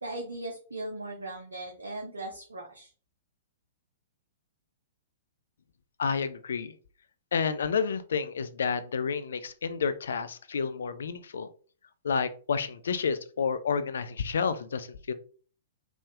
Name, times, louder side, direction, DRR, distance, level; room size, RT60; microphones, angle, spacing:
voice 1, 0.0-2.9, right 2 dB, 75° right, 0 dB, 0.7 m, -38 dB
voice 2, 6.0-6.7 7.3-11.5 12.0-15.1, left 6 dB, 65° left, 13 dB, 0.4 m, -30 dB
3.6 x 2.5 x 3.5 m, 0.41 s
figure-of-eight pair, 110°, 0 cm